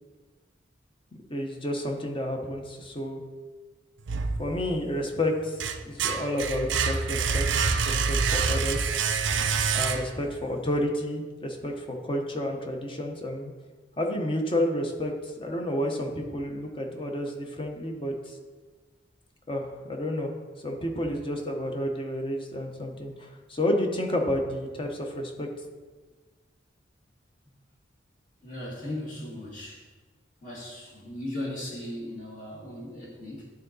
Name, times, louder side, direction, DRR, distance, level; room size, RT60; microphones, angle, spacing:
voice 1, 1.3-3.2 4.4-7.5 7.8-9.1 9.7-13.5 14.0-18.4 19.5-20.3 20.6-25.5, left 1 dB, 25° left, 2 dB, 1.0 m, -30 dB
sound 1, 4.1-4.9 5.3-10.4, right 5 dB, 70° right, 0.5 m, -27 dB
voice 2, 28.4-29.9 30.4-33.5, left 1 dB, 45° left, -4 dB, 2.0 m, -37 dB
11.5 x 4.0 x 4.0 m, 1.3 s
head